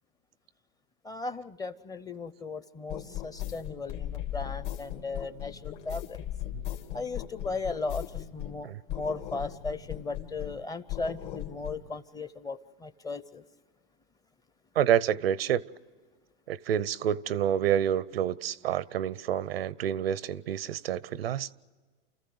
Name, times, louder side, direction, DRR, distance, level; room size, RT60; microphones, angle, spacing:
voice 1, 1.0-6.2 6.9-13.4, left 3 dB, 15° left, 0.7 m, -37 dB
sound 1, 2.9-8.6 8.9-10.6 10.9-11.8, left 12 dB, 60° left, 2.2 m, -38 dB
voice 2, 14.8-15.6 16.5-21.5, right 10 dB, 85° right, 0.7 m, -28 dB
29.5 x 14.5 x 7.9 m
hypercardioid pair, 125°, 29 cm